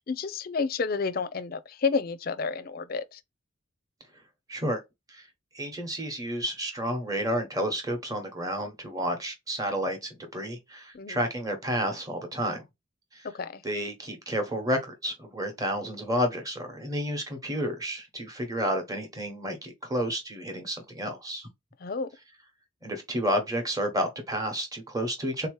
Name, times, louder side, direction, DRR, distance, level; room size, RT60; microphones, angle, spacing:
voice 1, 0.0-3.2 10.9-11.2 13.3-13.6 21.8-22.1, left 4 dB, 45° left, 0.4 m, -30 dB
voice 2, 4.5-4.8 5.1-5.3 5.5-12.6 13.1-13.3 13.6-21.5 22.8-25.5, equal, 20° right, 1.0 m, -31 dB
3.8 x 2.9 x 3.1 m
head